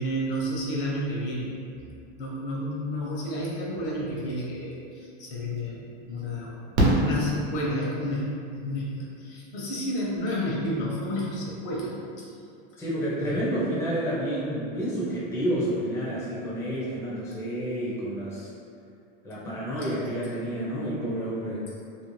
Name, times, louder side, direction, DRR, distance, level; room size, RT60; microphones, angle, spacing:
voice 1, 0.0-1.5 2.2-11.9 12.2-12.3 13.2-13.7, equal, 60° left, -5 dB, 0.8 m, -31 dB
Fireworks, 5.1-5.2 6.7-8.1 9.8-9.9 10.1-10.2, right 1 dB, 85° right, 0.8 m, -25 dB
voice 2, 12.8-18.5 19.2-21.6, right 1 dB, 10° left, -8 dB, 0.5 m, -29 dB
2.6 x 2.0 x 3.1 m, 2.5 s
supercardioid pair, 135°, 31 cm